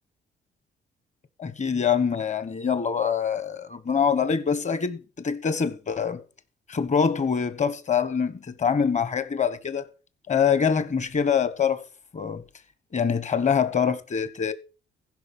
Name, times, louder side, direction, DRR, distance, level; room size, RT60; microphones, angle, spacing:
voice 1, 1.4-6.2 6.7-9.9 10.3-11.9 12.1-12.4 12.9-14.5, left 6 dB, 35° left, 1.2 m, -24 dB
15.5 x 5.4 x 6.0 m
cardioid pair, 90°, 20 cm